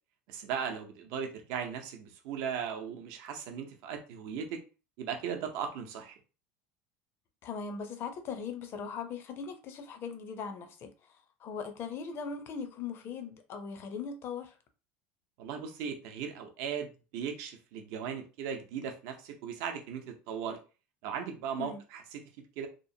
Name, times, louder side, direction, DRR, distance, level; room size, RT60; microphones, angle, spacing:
voice 1, 0.3-4.6 5.0-6.2 15.4-20.6 21.0-22.2 22.6-22.7, right 7 dB, 70° right, 0.6 m, -37 dB
voice 2, 7.4-14.6 21.6-21.8, left 6 dB, 45° left, 0.6 m, -40 dB
2.9 x 2.0 x 2.7 m
supercardioid pair, 115°, 6 cm